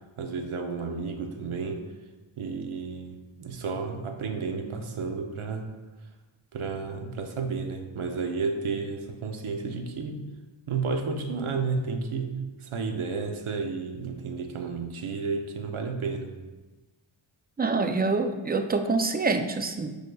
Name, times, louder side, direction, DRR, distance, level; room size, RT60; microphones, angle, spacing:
voice 1, 0.0-1.9 2.4-5.7 6.5-10.2 10.7-16.3, right 4 dB, 75° right, 4 dB, 0.8 m, -32 dB
voice 2, 17.6-20.0, right 3 dB, 20° right, 7 dB, 0.4 m, -26 dB
8.2 x 5.3 x 2.3 m, 1.2 s
wide cardioid pair, 105°, 50 cm